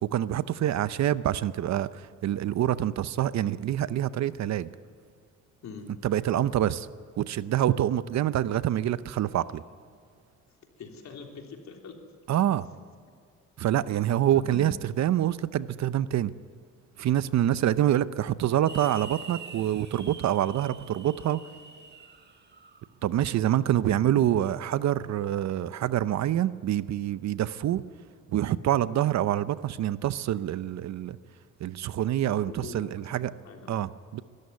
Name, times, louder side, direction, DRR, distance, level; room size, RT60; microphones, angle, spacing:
voice 1, 0.0-4.7 6.0-6.9 7.2-9.6 12.3-12.7 13.6-16.3 17.0-21.4 23.0-27.8 28.3-31.2 31.6-33.3 33.7-34.2, right 12 dB, 65° right, 16 dB, 0.7 m, -26 dB
voice 2, 10.8-12.0 14.3-14.7 32.4-33.8, left 4 dB, 65° left, 2 dB, 3.5 m, -43 dB
sound 1, 18.7-22.9, right 3 dB, 35° right, 1.5 m, -46 dB
21.5 x 13.5 x 9.6 m, 2.1 s
cardioid pair, 90°, 30 cm